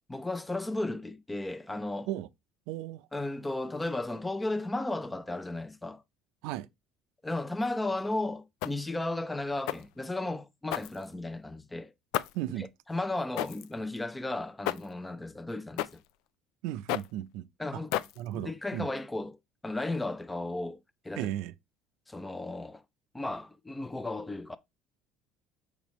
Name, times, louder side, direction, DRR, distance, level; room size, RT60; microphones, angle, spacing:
voice 1, 0.1-2.1 3.1-6.0 7.2-11.9 12.6-16.0 17.6-18.0 18.3-20.8 21.0-21.3 22.1-22.8 23.1-24.6, left 2 dB, 10° left, 0.5 m, -34 dB
voice 2, 2.7-3.1 6.4-6.7 12.3-12.7 16.6-17.5 18.2-18.9 21.2-21.5, right 13 dB, 80° right, 0.5 m, -35 dB
sound 1, 8.6-9.0 9.7-10.0 10.7-11.4 12.1-12.5 13.4-13.7 14.6-15.0 15.8-16.1 16.9-17.2 17.9-18.4, left 14 dB, 80° left, 0.4 m, -33 dB
7.1 x 5.0 x 3.1 m
cardioid pair, 140°, 0 cm